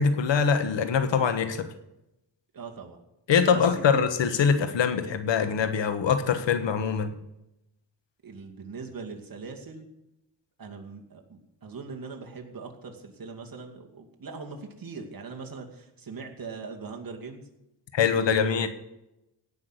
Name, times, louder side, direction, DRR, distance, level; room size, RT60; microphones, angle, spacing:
voice 1, 0.0-1.7 3.3-7.1 17.9-18.7, left 6 dB, 90° left, 9 dB, 1.5 m, -23 dB
voice 2, 2.5-3.0 3.5-4.0 8.2-9.8 10.6-17.4 18.0-18.7, right 4 dB, 50° right, 2 dB, 2.5 m, -40 dB
17.0 x 6.0 x 8.2 m, 0.88 s
wide cardioid pair, 105°, 43 cm